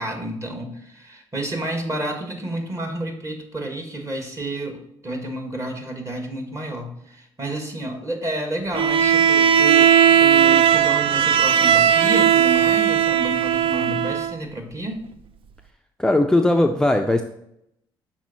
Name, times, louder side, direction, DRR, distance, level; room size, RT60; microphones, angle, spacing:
voice 1, 0.0-9.9 10.2-15.0, right 1 dB, 25° right, 4 dB, 1.7 m, -30 dB
Bowed string instrument, 8.7-14.4, right 8 dB, 50° right, 0.4 m, -17 dB
voice 2, 16.0-17.2, left 1 dB, 5° left, 4 dB, 0.5 m, -18 dB
6.1 x 4.3 x 4.2 m, 0.78 s
hypercardioid pair, 55°, 11 cm